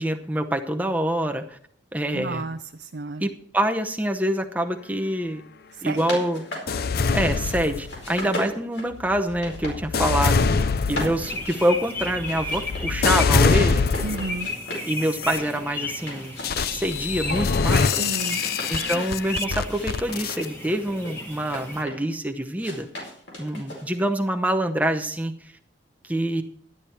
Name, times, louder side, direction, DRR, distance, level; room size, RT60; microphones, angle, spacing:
voice 1, 0.0-1.6 1.9-2.4 3.2-5.4 5.8-6.4 7.1-13.9 14.8-16.4 16.7-18.0 18.7-22.9 23.4-25.5 26.0-26.4, right 1 dB, 10° right, 5 dB, 0.8 m, -26 dB
voice 2, 2.1-3.3 5.7-6.0 14.0-14.5 18.0-18.4, right 3 dB, 55° right, 7 dB, 0.5 m, -32 dB
sound 1, 5.7-7.6 7.9-9.8 10.1-10.6 10.9-14.9 15.2-17.5 17.8-19.1 19.6-22.1 22.6-24.1, left 1 dB, 75° left, 4.6 m, -37 dB
sound 2, 6.7-8.2 8.9-14.4 15.0-15.4 16.4-20.5, left 5 dB, 50° left, 0.5 m, -24 dB
sound 3, 11.2-21.8, left 1 dB, 10° left, 1.2 m, -34 dB
12.5 x 10.5 x 4.4 m, 0.62 s
head